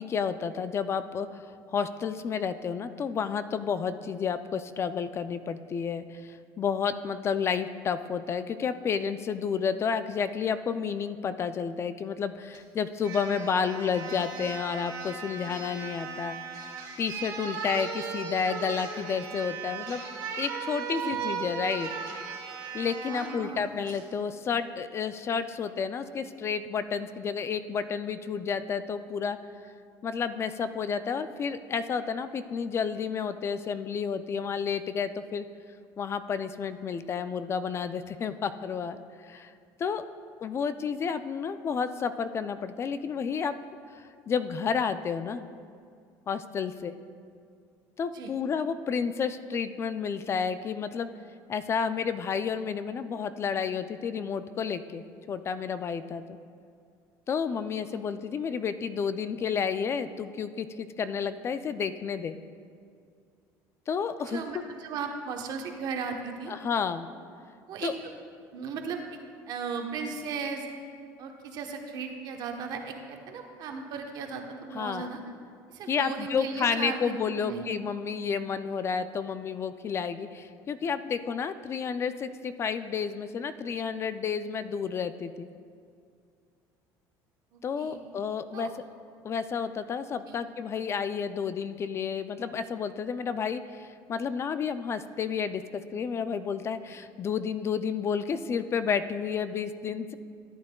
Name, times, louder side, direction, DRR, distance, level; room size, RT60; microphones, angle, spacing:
voice 1, 0.0-16.7 17.0-20.0 20.4-21.9 22.7-29.4 30.0-35.5 36.0-39.5 39.8-40.0 40.4-43.5 44.0-45.5 46.3-46.9 48.0-51.1 51.5-56.2 57.3-62.3 63.9-64.4 66.5-67.1 67.8-67.9 74.7-75.1 75.9-85.5 87.6-88.7 89.2-100.1, left 6 dB, 35° left, 12 dB, 0.3 m, -31 dB
sound 1, 12.5-12.6 13.0-23.4 23.9-24.0, right 5 dB, 75° right, 1.8 m, -37 dB
voice 2, 23.1-23.6 48.1-48.3 57.5-57.6 57.9-58.0 64.3-66.5 67.7-68.1 68.5-69.0 69.5-70.7 71.2-75.2 75.7-77.6 87.5-88.0 88.5-88.7 90.3-90.4, right 5 dB, 55° right, 4 dB, 1.0 m, -36 dB
14.0 x 8.7 x 2.2 m, 2.2 s
cardioid pair, 115°, 8 cm